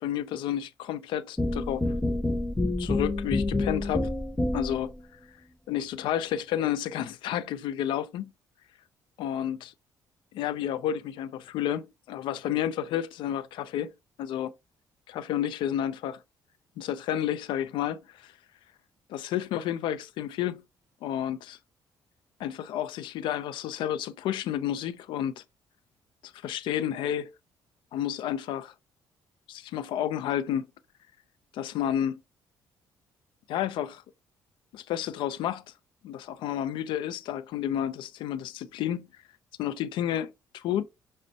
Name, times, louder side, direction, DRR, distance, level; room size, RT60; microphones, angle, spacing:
voice 1, 0.0-1.8 2.8-4.1 4.5-4.9 5.7-8.3 9.2-9.7 10.3-13.9 14.2-14.5 15.1-16.2 16.8-18.3 19.1-20.6 21.0-21.6 22.4-25.4 26.2-27.3 27.9-28.7 29.5-30.7 31.5-32.2 33.5-34.0 34.7-35.6 36.0-39.1 39.6-40.8, left 10 dB, 75° left, 0.4 m, -31 dB
sound 1, 1.4-4.9, left 2 dB, 10° left, 0.5 m, -28 dB
6.1 x 2.1 x 2.6 m
cardioid pair, 85°, 8 cm